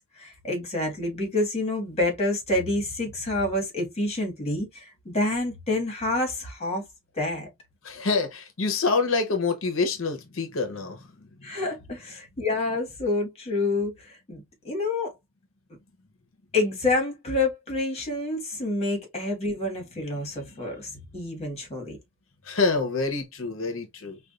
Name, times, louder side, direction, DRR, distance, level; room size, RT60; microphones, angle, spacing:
voice 1, 0.2-6.8 7.2-7.5 11.4-15.1 16.5-22.0, left 2 dB, 30° left, 1.8 m, -28 dB
voice 2, 7.8-11.6 20.5-20.6 20.9-21.0 22.4-24.2, left 4 dB, 70° left, 0.9 m, -27 dB
4.8 x 2.5 x 2.5 m
head